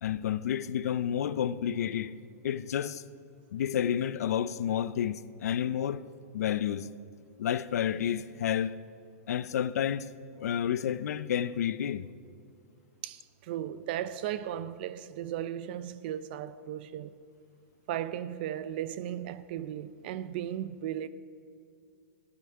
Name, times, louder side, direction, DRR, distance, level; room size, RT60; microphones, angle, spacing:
voice 1, 0.0-2.1 2.4-3.0 3.5-6.0 6.3-6.9 7.4-8.8 9.3-12.1, left 9 dB, 75° left, 0.5 m, -30 dB
voice 2, 13.0-17.2 17.9-21.1, right 11 dB, 35° right, 0.5 m, -36 dB
14.0 x 5.9 x 9.8 m
supercardioid pair, 170°, 8 cm